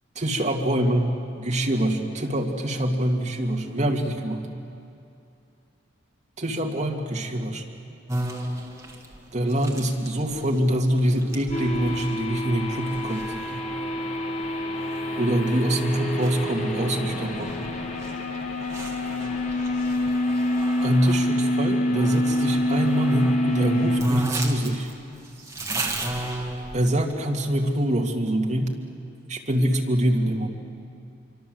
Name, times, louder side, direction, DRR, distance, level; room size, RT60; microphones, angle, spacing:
voice 1, 0.2-4.4 6.4-7.6 9.3-13.5 15.2-17.6 20.8-24.9 26.7-28.7 29.3-30.5, right 1 dB, 35° right, 1 dB, 2.1 m, -24 dB
sound 1, 8.1-21.3 21.9-23.4 23.6-23.7 24.0-27.1, right 1 dB, 15° right, 2.4 m, -34 dB
sound 2, 11.5-24.0, left 1 dB, 35° left, 2.3 m, -27 dB
25.5 x 24.5 x 7.8 m, 2.6 s
head